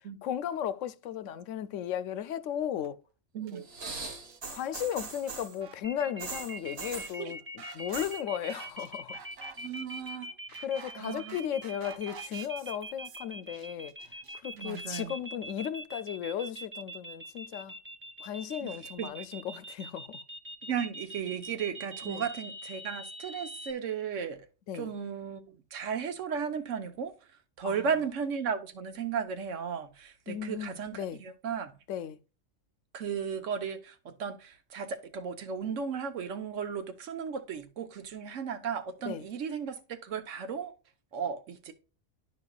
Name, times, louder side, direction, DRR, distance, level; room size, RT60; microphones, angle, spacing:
voice 1, 0.2-3.0 4.5-9.2 10.6-13.9 14.4-17.8 18.2-20.1 22.0-22.2 24.7-24.9 27.6-27.9 30.3-31.2 31.9-32.2 39.0-39.2, left 9 dB, 75° left, 0.9 m, -35 dB
sound 1, 2.8-2.9 3.4-4.0 4.2-4.4 4.7-15.8, right 6 dB, 90° right, 1.4 m, -52 dB
voice 2, 3.3-3.7 7.2-7.3 9.6-10.3 11.0-11.4 14.5-15.2 18.6-19.2 20.6-24.5 24.7-27.1 27.6-31.7 32.9-40.7 41.1-41.7, right 7 dB, 70° right, 1.2 m, -35 dB
sound 2, 3.6-5.6 6.2-7.2 7.8-8.2 8.5-9.0 9.3-10.1 10.8-10.9, right 4 dB, 55° right, 1.5 m, -41 dB
sound 3, 5.8-23.7, right 2 dB, 15° right, 0.5 m, -43 dB
11.5 x 5.1 x 2.3 m
omnidirectional pair, 1.3 m